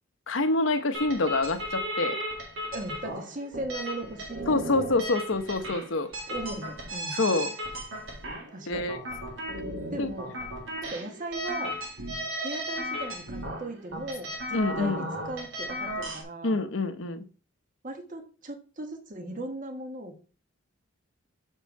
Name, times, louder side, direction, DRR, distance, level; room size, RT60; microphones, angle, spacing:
voice 1, 0.3-2.2 4.5-6.1 7.1-7.6 8.7-9.0 10.0-10.1 14.5-15.0 16.4-17.2, left 2 dB, 70° left, 0.9 m, -26 dB
sound 1, 0.9-16.2, equal, 90° right, 2.1 m, -35 dB
voice 2, 2.7-4.9 6.3-7.2 8.5-8.9 9.9-10.4 10.8-11.7 12.4-16.6 17.8-20.2, right 2 dB, 40° right, 1.2 m, -38 dB
6.4 x 4.6 x 4.6 m
head